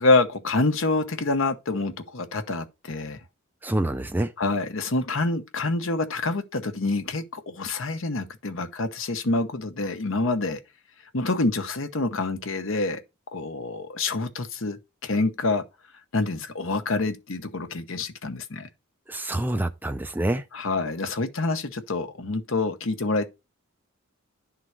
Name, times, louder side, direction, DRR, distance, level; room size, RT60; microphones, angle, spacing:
voice 1, 0.0-3.2 4.4-10.6 11.1-13.0 13.3-15.6 16.1-18.7 20.5-23.3, left 3 dB, 60° left, 1.0 m, -26 dB
voice 2, 3.6-4.3 19.1-20.4, right 1 dB, 10° right, 0.4 m, -26 dB
11.0 x 3.8 x 4.6 m
head